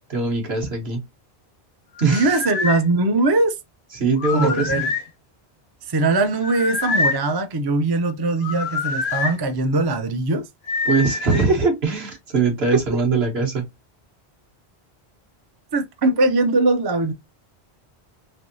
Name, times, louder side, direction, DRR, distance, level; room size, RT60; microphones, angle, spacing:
voice 1, 0.1-1.0 2.0-2.4 3.9-4.7 10.9-13.7, right 4 dB, 70° right, 1.4 m, -21 dB
sound 1, 2.0-2.8 4.2-5.1 6.4-7.3 8.4-9.4 10.7-11.5, left 4 dB, 80° left, 0.9 m, -25 dB
voice 2, 2.1-3.6 4.3-4.9 5.9-10.4 12.7-12.8 15.7-17.1, right 2 dB, 40° right, 0.3 m, -21 dB
3.4 x 2.6 x 2.6 m
omnidirectional pair, 1.1 m